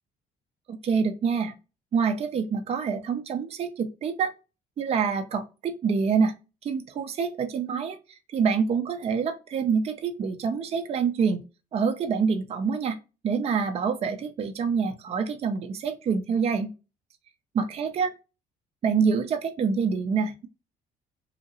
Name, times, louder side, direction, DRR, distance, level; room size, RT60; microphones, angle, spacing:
voice 1, 0.7-1.5 1.9-4.3 4.8-6.3 6.6-11.4 11.7-13.0 13.2-16.7 17.5-18.1 18.8-20.5, right 6 dB, 35° right, 6 dB, 0.5 m, -26 dB
2.8 x 2.6 x 2.7 m, 0.30 s
cardioid pair, 110°, 17 cm